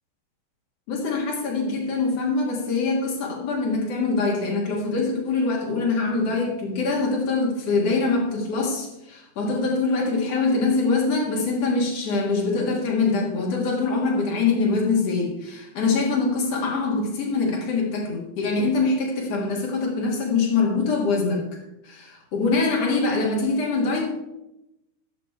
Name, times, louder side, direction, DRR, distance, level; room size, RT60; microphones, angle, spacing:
voice 1, 0.9-21.5 21.8-24.1, left 3 dB, 75° left, -2 dB, 1.4 m, -24 dB
14.5 x 6.4 x 4.6 m, 0.93 s
omnidirectional pair, 5.8 m